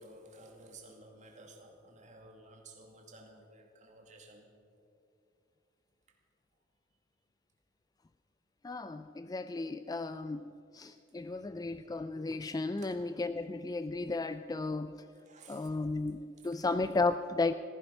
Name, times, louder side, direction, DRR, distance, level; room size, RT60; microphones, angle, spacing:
voice 1, 0.0-4.6 6.1-6.2 12.8-13.0 15.2-15.8 16.4-16.6, right 2 dB, 40° right, 2 dB, 2.1 m, -55 dB
voice 2, 8.6-15.0 15.5-17.5, left 3 dB, 20° left, 11 dB, 0.3 m, -34 dB
15.0 x 15.0 x 5.4 m, 2.5 s
head